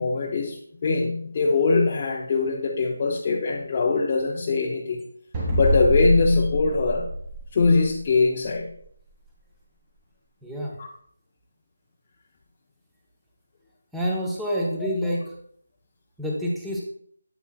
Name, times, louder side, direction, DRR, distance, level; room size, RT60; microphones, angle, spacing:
voice 1, 0.0-5.0 5.5-7.1 7.5-8.7 10.8-10.9, left 3 dB, 30° left, -1 dB, 0.6 m, -22 dB
sound 1, 5.3-8.0, equal, 20° right, 2.0 m, -25 dB
voice 2, 10.4-10.8 13.9-15.3 16.2-16.8, equal, 5° right, -4 dB, 1.0 m, -27 dB
8.1 x 8.0 x 2.4 m, 0.64 s
figure-of-eight pair, 165°, 0 cm